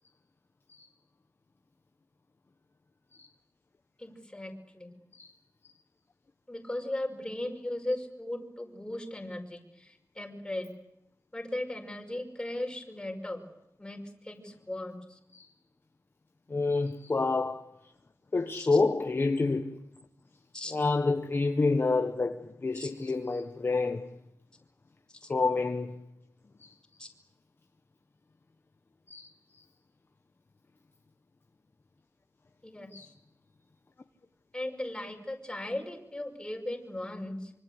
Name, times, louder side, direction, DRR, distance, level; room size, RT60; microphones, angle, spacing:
voice 1, 4.0-4.9 6.5-10.7 11.3-13.4 13.8-14.0 14.2-15.2 18.5-18.7 20.5-20.8 22.7-22.9 25.2-25.3 27.0-27.1 32.6-32.9 34.5-37.5, left 1 dB, 10° left, 5.6 m, -37 dB
voice 2, 16.5-17.7 18.3-19.8 20.7-24.1 25.3-26.0 26.6-26.7 29.1-29.3 32.9-33.1, left 3 dB, 35° left, 1.4 m, -28 dB
25.5 x 25.0 x 8.1 m
wide cardioid pair, 125°, 7 cm